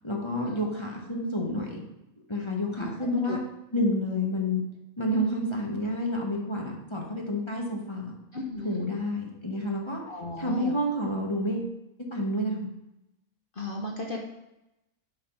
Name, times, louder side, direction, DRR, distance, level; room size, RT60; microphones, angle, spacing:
voice 1, 0.0-1.8 2.3-3.4 3.7-4.6 5.0-8.1 8.6-10.0 10.4-11.7 12.1-12.7, left 1 dB, 20° left, -1 dB, 1.1 m, -29 dB
voice 2, 8.3-8.8 10.1-10.7 13.5-14.2, left 2 dB, 45° left, 0 dB, 0.9 m, -35 dB
7.3 x 3.9 x 5.9 m, 0.90 s
omnidirectional pair, 1.5 m